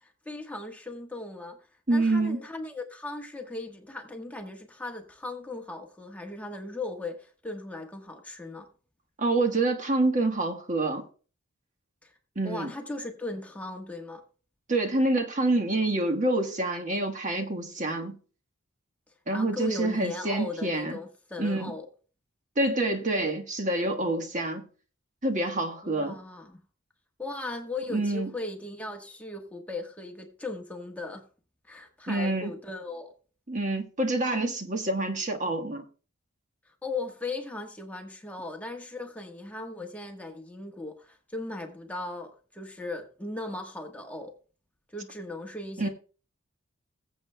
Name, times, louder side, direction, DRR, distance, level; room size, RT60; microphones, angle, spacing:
voice 1, 0.0-1.6 1.9-8.7 12.0-12.1 12.4-14.2 19.3-21.9 25.8-26.6 27.2-31.2 31.7-33.1 36.7-44.3 44.9-45.9, left 2 dB, 5° left, 1.2 m, -38 dB
voice 2, 1.9-2.4 9.2-11.0 12.3-12.7 14.7-18.1 19.3-21.0 21.4-21.7 22.6-24.6 25.2-26.2 27.9-28.3 32.1-32.5 33.5-35.8 45.8-45.9, right 2 dB, 40° right, 1.3 m, -27 dB
20.0 x 7.7 x 2.2 m
head